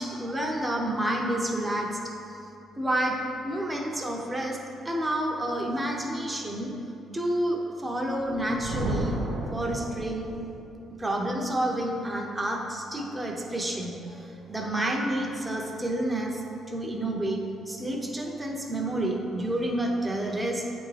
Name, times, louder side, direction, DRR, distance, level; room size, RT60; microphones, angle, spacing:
voice 1, 0.0-2.0 2.7-3.2 3.4-4.6 4.8-6.7 7.1-9.2 9.5-10.3 11.0-16.4 16.7-17.4 17.7-20.7, right 1 dB, 15° right, 0 dB, 0.7 m, -29 dB
Thunder, 8.2-10.6, right 1 dB, 85° right, 0.8 m, -33 dB
8.6 x 3.5 x 3.3 m, 2.7 s
cardioid pair, 125°, 0 cm